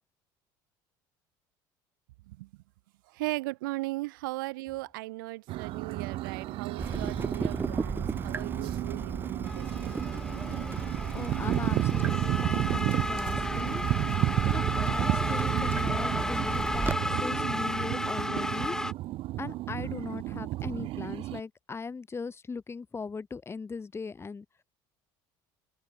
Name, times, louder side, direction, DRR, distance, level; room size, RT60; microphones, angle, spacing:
voice 1, 3.1-9.9, right 21 dB, 85° right, 1.5 m, -37 dB
sound 1, 5.5-21.4, right 17 dB, 60° right, 0.6 m, -32 dB
Water tap faucet / Drip, 6.8-16.9, right 4 dB, 20° right, 0.9 m, -35 dB
sound 2, 9.4-18.9, left 1 dB, 5° left, 0.8 m, -33 dB
voice 2, 11.1-13.8 14.4-18.8 19.4-24.5, left 4 dB, 25° left, 2.3 m, -39 dB
supercardioid pair, 85°, 11 cm